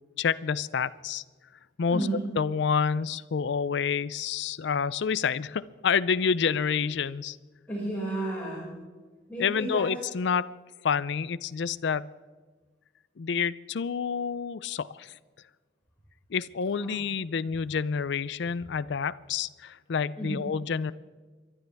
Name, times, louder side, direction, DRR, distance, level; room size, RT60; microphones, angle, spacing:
voice 1, 0.2-1.2 1.8-2.0 2.4-7.4 9.4-10.5 10.8-12.1 13.2-15.1 16.3-20.9, left 6 dB, 65° left, 17 dB, 0.4 m, -28 dB
voice 2, 1.9-2.2 7.7-8.7 9.3-9.9 16.8-17.0 20.2-20.4, right 2 dB, 10° left, -8 dB, 5.5 m, -32 dB
29.5 x 12.0 x 3.5 m, 1.4 s
head